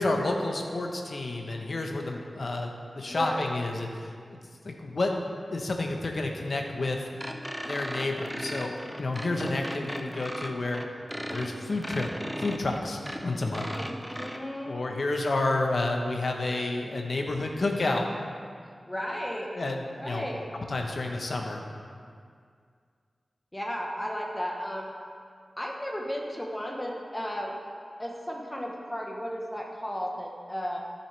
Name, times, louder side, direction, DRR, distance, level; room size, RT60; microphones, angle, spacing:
voice 1, 0.0-4.4 4.6-5.1 5.5-7.0 7.5-10.8 11.1-12.1 12.4-13.7 14.7-18.1 19.5-20.2 20.7-21.6, left 2 dB, 65° left, 2 dB, 1.0 m, -30 dB
voice 2, 3.1-3.5 13.7-15.0 18.9-19.5 20.0-20.4 23.5-24.9 25.6-27.5 28.0-30.8, equal, 15° left, -1 dB, 1.1 m, -34 dB
sound 1, 7.2-14.4, equal, 5° right, 0.6 m, -37 dB
12.5 x 7.2 x 3.4 m, 2.1 s
wide cardioid pair, 80°, 0 cm